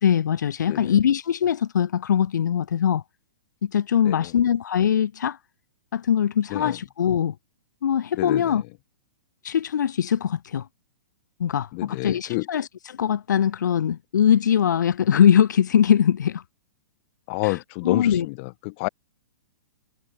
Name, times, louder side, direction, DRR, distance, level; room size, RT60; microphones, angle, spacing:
voice 1, 0.0-3.0 3.6-5.4 5.9-7.3 7.8-8.6 9.4-10.7 11.4-16.4 17.4-18.3, left 9 dB, 75° left, 2.9 m, -22 dB
voice 2, 11.7-12.4 17.3-18.9, left 29 dB, 40° left, 1.6 m, -28 dB
hypercardioid pair, 140°, 10 cm